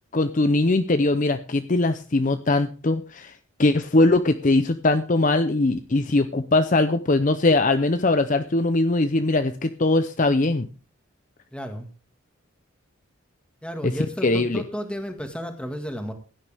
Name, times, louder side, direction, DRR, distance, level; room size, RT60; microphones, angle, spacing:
voice 1, 0.1-3.3 3.6-10.7 13.8-13.9 14.2-14.6, left 2 dB, 35° left, 10 dB, 0.6 m, -21 dB
voice 2, 11.5-11.9 13.6-16.1, equal, 5° left, 5 dB, 1.9 m, -32 dB
16.5 x 9.9 x 3.5 m, 0.36 s
head